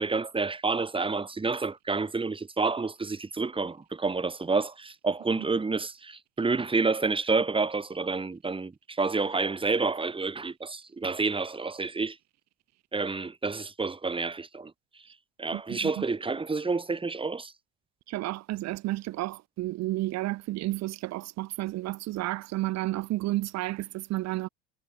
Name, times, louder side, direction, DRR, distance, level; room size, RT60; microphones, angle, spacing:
voice 1, 0.0-12.2 12.9-14.7 15.4-17.5, right 4 dB, 15° right, 3.5 m, -29 dB
voice 2, 15.5-16.0 18.1-24.5, right 17 dB, 55° right, 2.7 m, -32 dB
hypercardioid pair, 85°, 32 cm